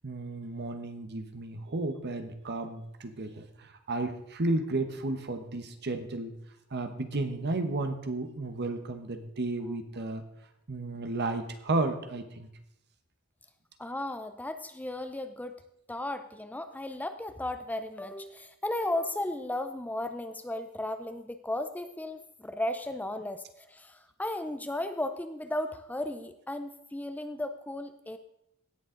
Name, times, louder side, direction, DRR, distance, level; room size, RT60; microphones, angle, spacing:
voice 1, 0.0-6.3 6.7-10.2 10.7-12.5, right 2 dB, 50° right, 8 dB, 1.0 m, -33 dB
voice 2, 13.8-15.6 15.9-28.2, left 1 dB, 5° left, 9 dB, 0.4 m, -35 dB
17.0 x 7.0 x 3.8 m, 0.81 s
head